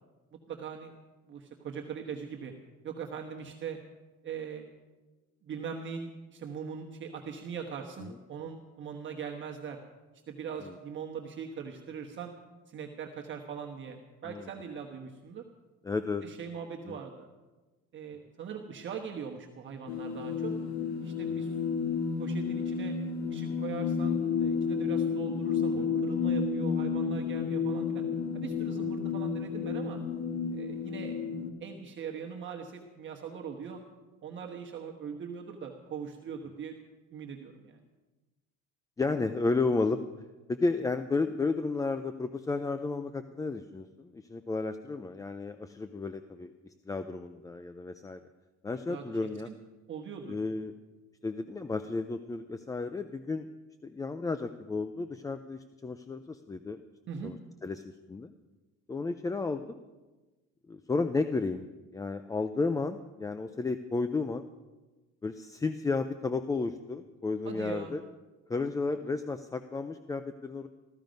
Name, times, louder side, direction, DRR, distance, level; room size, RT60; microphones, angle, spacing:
voice 1, 0.5-0.9 1.2-2.5 2.8-3.8 4.2-4.6 5.4-9.8 10.3-12.3 12.7-15.4 16.2-17.3 17.9-20.5 21.0-21.6 22.2-23.0 23.3-28.0 28.3-30.0 30.5-31.2 31.6-33.8 34.2-36.8 37.1-37.8 48.9-49.0 49.4-49.5 49.9-50.4 57.1-57.3 67.4-67.9, right 6 dB, 35° right, 1 dB, 1.3 m, -41 dB
voice 2, 15.8-16.2 16.9-17.0 25.7-25.9 39.0-40.0 40.5-46.5 46.9-48.2 48.6-49.5 50.3-50.7 51.2-53.5 53.8-56.8 57.2-57.4 57.6-58.3 58.9-59.8 60.7-61.6 61.9-64.4 65.2-68.0 68.5-70.7, left 3 dB, 10° left, 10 dB, 0.4 m, -32 dB
sound 1, 19.9-31.5, left 6 dB, 80° left, 1.6 m, -31 dB
14.5 x 14.0 x 5.2 m, 1.2 s
cardioid pair, 150°, 32 cm